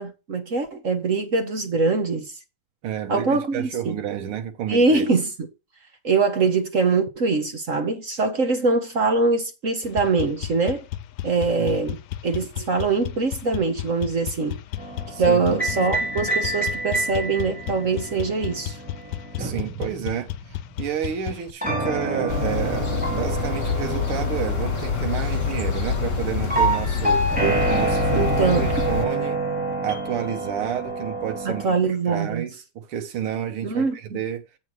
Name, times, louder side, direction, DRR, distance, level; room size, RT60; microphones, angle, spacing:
voice 1, 0.0-2.3 3.1-4.0 4.7-5.5 6.0-10.8 11.2-14.6 15.2-18.8 27.4-27.6 28.1-28.8 31.4-32.4 33.6-34.2, right 4 dB, 45° right, 1.2 m, -23 dB
voice 2, 2.8-5.1 11.5-11.8 15.1-15.9 19.4-20.3 20.8-27.3 27.7-29.4 29.8-34.4, right 9 dB, 80° right, 2.0 m, -30 dB
sound 1, 9.8-21.5, left 13 dB, 75° left, 1.3 m, -34 dB
sound 2, 14.8-20.7 21.6-31.6, right 2 dB, 5° right, 3.2 m, -28 dB
sound 3, 22.3-29.0, left 6 dB, 40° left, 1.7 m, -26 dB
8.0 x 4.3 x 6.2 m
omnidirectional pair, 2.4 m